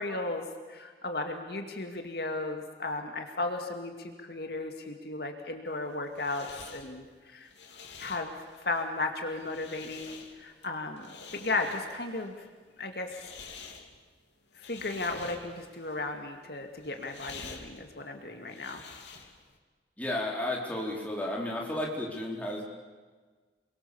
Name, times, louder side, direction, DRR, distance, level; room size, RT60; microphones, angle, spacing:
voice 1, 0.0-6.5 6.7-7.5 8.0-11.1 11.3-12.5 12.8-13.2 14.6-18.8, left 2 dB, 60° left, 4 dB, 2.2 m, -35 dB
sound 1, 5.7-19.6, left 5 dB, 85° left, 3.1 m, -49 dB
voice 2, 20.0-22.6, left 1 dB, 10° left, -3 dB, 4.3 m, -33 dB
29.5 x 22.5 x 7.2 m, 1.4 s
head